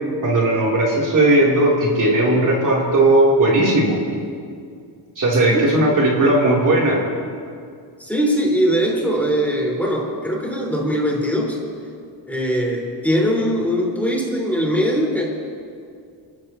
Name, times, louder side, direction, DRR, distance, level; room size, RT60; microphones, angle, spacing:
voice 1, 0.2-4.0 5.2-7.0, right 1 dB, 40° right, -5 dB, 3.5 m, -17 dB
voice 2, 5.5-5.9 8.0-11.6 12.3-15.2, equal, 5° left, -4 dB, 4.9 m, -21 dB
30.0 x 14.5 x 3.1 m, 2.2 s
cardioid pair, 100°, 45 cm